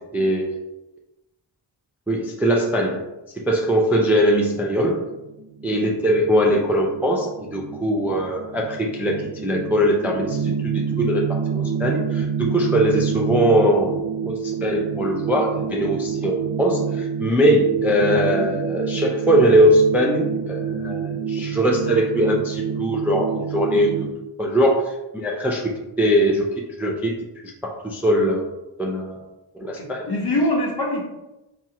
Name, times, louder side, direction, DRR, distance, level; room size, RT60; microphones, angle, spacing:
voice 1, 0.1-0.6 2.1-3.0 3.4-5.1 5.6-14.0 14.3-24.1 24.4-25.7 26.0-26.5 26.8-27.1 27.4-28.5 28.8-29.3 29.5-30.1, equal, 5° right, -1 dB, 0.4 m, -21 dB
sound 1, 5.1-24.1, right 7 dB, 50° right, 0.6 m, -28 dB
voice 2, 29.6-31.0, left 1 dB, 50° left, -3 dB, 1.2 m, -24 dB
4.3 x 2.4 x 2.8 m, 0.96 s
wide cardioid pair, 95°, 49 cm